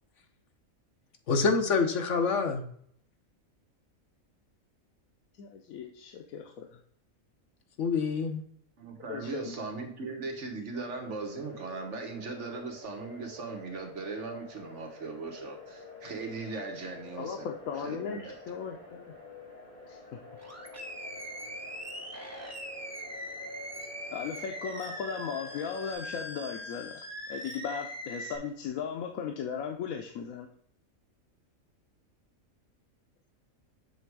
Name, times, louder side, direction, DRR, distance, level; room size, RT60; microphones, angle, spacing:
voice 1, 1.3-2.6 7.8-8.4, left 4 dB, 65° left, 5 dB, 1.2 m, -26 dB
voice 2, 5.4-6.8 9.1-9.6 17.2-19.0 19.9-20.0 24.1-27.0 27.3-30.5, left 7 dB, 85° left, 2 dB, 1.1 m, -37 dB
voice 3, 8.8-17.5 17.8-18.3, right 3 dB, 60° right, 3 dB, 1.2 m, -39 dB
sound 1, 10.7-25.9, left 2 dB, 35° left, 1.5 m, -49 dB
Animal, 20.4-28.4, equal, 15° right, 0.7 m, -41 dB
7.0 x 3.3 x 4.6 m, 0.64 s
omnidirectional pair, 1.4 m